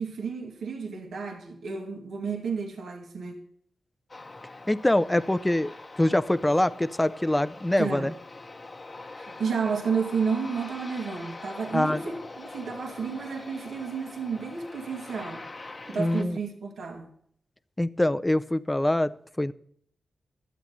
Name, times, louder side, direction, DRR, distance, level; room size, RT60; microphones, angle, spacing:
voice 1, 0.0-3.4 7.8-8.1 9.2-15.4 15.9-17.1, right 5 dB, 75° right, 2 dB, 2.2 m, -31 dB
Aircraft, 4.1-16.2, left 3 dB, 40° left, 1.1 m, -43 dB
voice 2, 4.7-8.1 11.7-12.0 15.9-16.4 17.8-19.5, left 1 dB, 15° left, 13 dB, 0.6 m, -24 dB
12.5 x 8.1 x 6.8 m, 0.65 s
cardioid pair, 50°, 0 cm